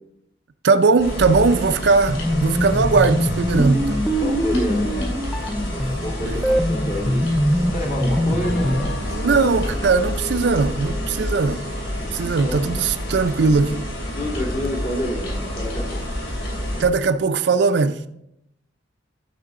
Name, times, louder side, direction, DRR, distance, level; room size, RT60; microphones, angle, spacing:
voice 1, 0.6-4.0 6.2-6.4 9.1-11.7 12.1-13.9 16.8-18.0, right 4 dB, 65° right, 0.4 m, -19 dB
sound 1, 1.0-16.8, equal, 80° left, 3.1 m, -28 dB
sound 2, 2.1-8.9, equal, ahead, 0.4 m, -23 dB
voice 2, 4.2-5.3 5.6-7.2 7.7-8.9 12.2-12.6 14.1-16.1, left 1 dB, 45° left, 2.0 m, -29 dB
Bell, 8.4-13.0, left 1 dB, 60° left, 0.9 m, -37 dB
11.5 x 5.6 x 3.7 m
head